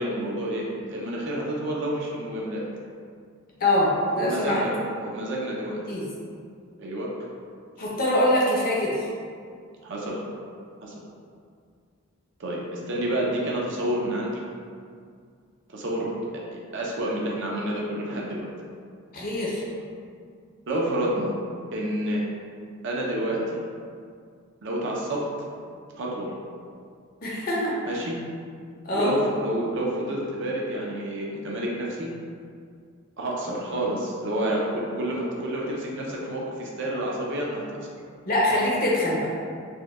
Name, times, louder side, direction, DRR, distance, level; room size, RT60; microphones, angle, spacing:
voice 1, 0.0-2.6 4.1-5.8 6.8-7.1 9.8-10.2 10.8-10.9 12.4-14.4 15.7-16.1 16.5-18.5 20.7-21.4 21.7-22.3 22.8-23.6 24.6-25.2 26.0-26.3 27.9-28.2 28.9-32.1 33.2-37.8, right 1 dB, 60° right, -3 dB, 0.5 m, -29 dB
voice 2, 3.6-4.6 5.9-6.0 7.8-9.1 19.1-19.6 27.2-27.7 28.8-29.2 38.2-39.3, left 1 dB, 45° left, -5 dB, 0.7 m, -23 dB
4.2 x 2.2 x 2.3 m, 2.2 s
head